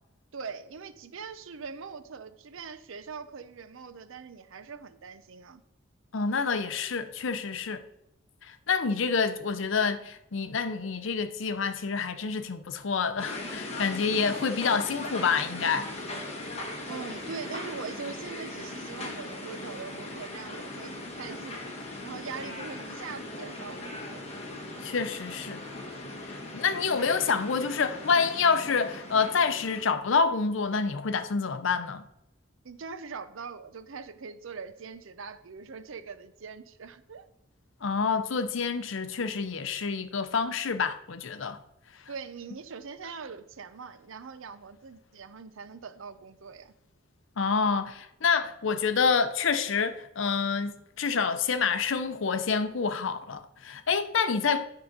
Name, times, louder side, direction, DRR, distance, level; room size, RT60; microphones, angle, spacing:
voice 1, 0.3-5.6 16.9-21.6 22.0-24.3 26.7-27.0 32.6-37.2 42.1-46.7, right 5 dB, 70° right, 0.6 m, -42 dB
voice 2, 6.1-7.8 8.4-15.9 24.8-25.6 26.3-32.0 37.8-41.6 47.4-54.6, left 5 dB, 65° left, 0.6 m, -27 dB
sound 1, 13.2-29.8, left 2 dB, 30° left, 1.1 m, -39 dB
9.5 x 3.8 x 5.2 m
head